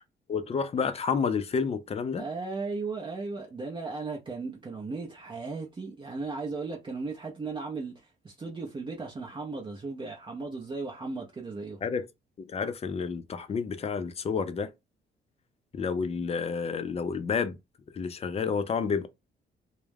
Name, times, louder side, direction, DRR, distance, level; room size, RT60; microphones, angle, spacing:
voice 1, 0.3-2.2 11.8-12.1 12.4-14.7 15.7-17.6 17.9-19.1, left 5 dB, 30° left, 0.4 m, -30 dB
voice 2, 2.1-11.8, right 3 dB, 25° right, 0.6 m, -36 dB
2.3 x 2.1 x 3.2 m
cardioid pair, 90°, 20 cm